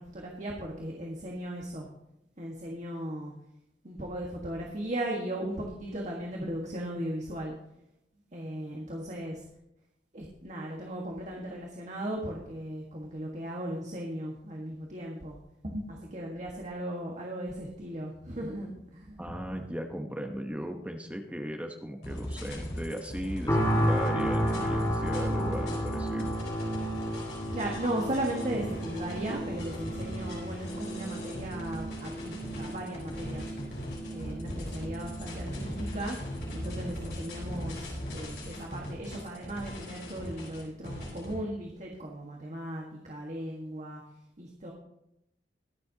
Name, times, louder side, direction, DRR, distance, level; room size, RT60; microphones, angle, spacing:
voice 1, 0.0-1.9 2.4-3.3 3.8-7.5 8.3-9.4 10.1-15.4 15.6-19.6 27.5-33.5 34.1-36.2 36.5-44.0 44.4-44.7, right 1 dB, 40° right, -1 dB, 1.5 m, -37 dB
voice 2, 19.2-26.4, equal, 10° right, 3 dB, 0.9 m, -37 dB
sound 1, 22.0-41.3, equal, 65° left, 4.2 m, -39 dB
sound 2, 23.5-38.5 39.0-39.1, equal, 20° left, 4.3 m, -33 dB
22.5 x 7.5 x 2.8 m, 0.84 s
head